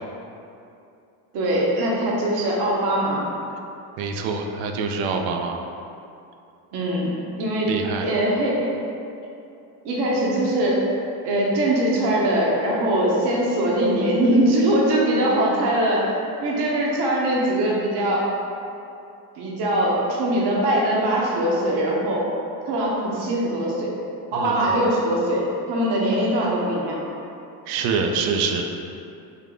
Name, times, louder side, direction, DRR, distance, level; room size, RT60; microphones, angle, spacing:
voice 1, 1.3-3.3 6.7-7.7 8.0-8.7 9.8-10.8 11.2-18.2 19.3-22.2 22.7-23.9 24.3-27.0, right 1 dB, 60° right, -4 dB, 0.9 m, -22 dB
voice 2, 4.0-5.6 7.6-8.1 24.3-24.7 27.7-28.7, right 5 dB, 80° right, 4 dB, 0.5 m, -25 dB
3.6 x 2.1 x 3.7 m, 2.7 s
supercardioid pair, 85°, 45 cm